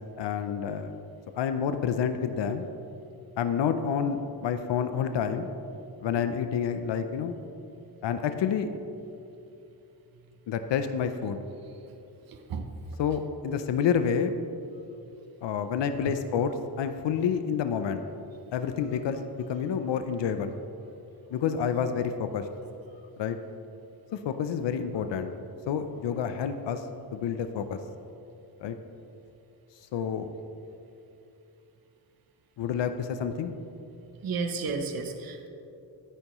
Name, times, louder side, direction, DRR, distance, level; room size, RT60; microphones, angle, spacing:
voice 1, 0.2-0.9 1.3-2.7 3.4-5.5 6.0-7.4 8.0-8.7 10.5-11.4 13.0-14.3 15.4-18.0 18.5-20.6 21.3-22.5 23.2-23.4 24.1-25.3 25.7-26.8 27.1-27.8 28.6-28.8 29.9-30.3 32.6-33.5, left 7 dB, 85° left, 9 dB, 0.6 m, -29 dB
voice 2, 12.3-12.7 34.2-35.5, right 4 dB, 55° right, 5 dB, 0.8 m, -32 dB
13.5 x 10.0 x 3.0 m, 2.8 s
wide cardioid pair, 140°, 42 cm